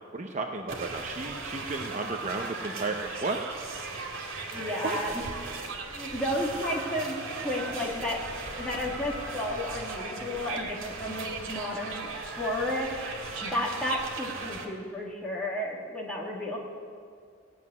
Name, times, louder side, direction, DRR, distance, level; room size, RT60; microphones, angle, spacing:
voice 1, 0.1-3.4 4.8-5.0, right 3 dB, 35° right, 3 dB, 0.7 m, -33 dB
sound 1, 0.7-14.7, right 3 dB, 80° right, 2.2 m, -38 dB
voice 2, 4.5-5.2 5.8-8.2 8.6-12.9 13.4-16.6, left 1 dB, 5° left, -5 dB, 2.4 m, -32 dB
sound 2, 6.2-11.2, left 1 dB, 25° left, 2.6 m, -45 dB
17.5 x 7.6 x 9.5 m, 2.2 s
head